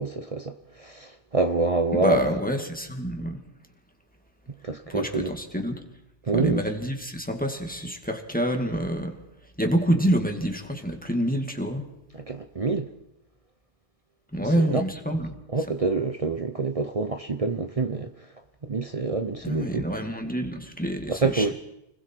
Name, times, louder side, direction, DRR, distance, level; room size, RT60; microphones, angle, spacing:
voice 1, 0.0-2.2 4.6-5.3 6.2-6.6 12.1-12.9 14.4-14.8 15.5-18.3 18.6-19.8 21.1-21.5, right 3 dB, 35° right, 0.9 m, -27 dB
voice 2, 2.0-3.4 4.9-5.9 6.3-9.2 9.6-11.9 14.3-15.4 19.4-21.5, equal, 10° left, 2.2 m, -27 dB
30.0 x 20.5 x 4.6 m
omnidirectional pair, 1.1 m